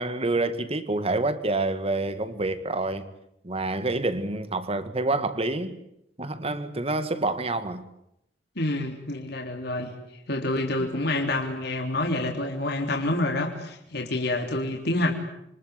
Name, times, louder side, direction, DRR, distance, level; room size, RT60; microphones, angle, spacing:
voice 1, 0.0-3.1 3.4-5.8 6.2-7.9 10.8-10.9, right 2 dB, 35° right, 2.1 m, -27 dB
voice 2, 8.6-9.9 10.3-15.1, left 2 dB, 65° left, 3.5 m, -27 dB
28.5 x 24.5 x 8.3 m
head